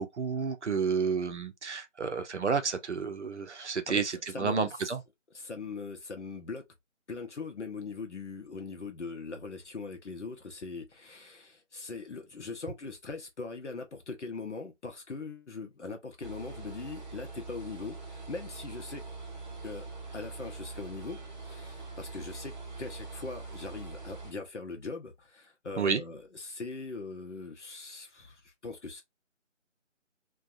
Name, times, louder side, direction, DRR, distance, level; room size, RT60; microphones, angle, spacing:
voice 1, 0.0-5.0 25.8-26.0, right 5 dB, 65° right, 0.6 m, -30 dB
voice 2, 3.9-4.7 5.3-6.6 7.1-19.0 19.6-19.9 20.1-29.0, left 4 dB, 65° left, 0.6 m, -41 dB
sound 1, 16.2-24.3, right 3 dB, 35° right, 0.9 m, -43 dB
2.5 x 2.2 x 2.4 m
figure-of-eight pair, 155°, 38 cm